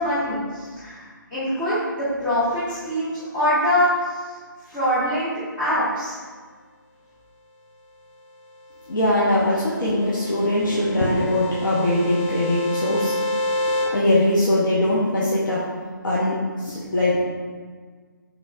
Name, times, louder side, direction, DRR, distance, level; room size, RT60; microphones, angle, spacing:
voice 1, 0.0-4.3 4.6-6.1, equal, 10° left, -12 dB, 0.4 m, -24 dB
voice 2, 8.9-13.4 13.7-15.7 16.0-17.2, left 1 dB, 65° left, -7 dB, 0.7 m, -21 dB
sound 1, 8.9-13.8, left 1 dB, 10° right, 0.9 m, -29 dB
3.9 x 3.1 x 2.3 m, 1.5 s
figure-of-eight pair, 155°, 11 cm